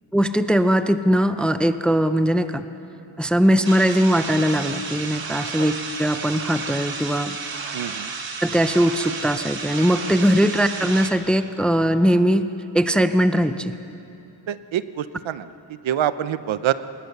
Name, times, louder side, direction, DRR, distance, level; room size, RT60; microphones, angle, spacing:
voice 1, 0.1-2.6 3.2-5.7 6.0-7.4 7.8-7.9 8.4-12.4 12.7-13.7, equal, ahead, 10 dB, 0.5 m, -20 dB
sound 1, 3.6-11.1, right 5 dB, 50° right, 1.8 m, -32 dB
voice 2, 7.7-8.1 14.5-16.7, right 11 dB, 75° right, 14 dB, 0.8 m, -26 dB
25.5 x 20.0 x 6.7 m, 2.9 s
wide cardioid pair, 155°, 47 cm